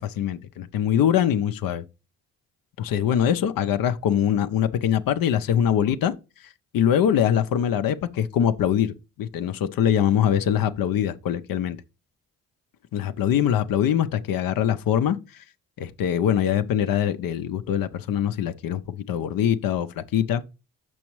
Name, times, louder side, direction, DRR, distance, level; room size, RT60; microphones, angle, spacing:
voice 1, 0.0-1.8 2.8-6.1 6.7-11.8 12.9-15.4 15.8-20.4, left 9 dB, 70° left, 0.6 m, -23 dB
6.2 x 6.0 x 3.0 m
supercardioid pair, 45°, 36 cm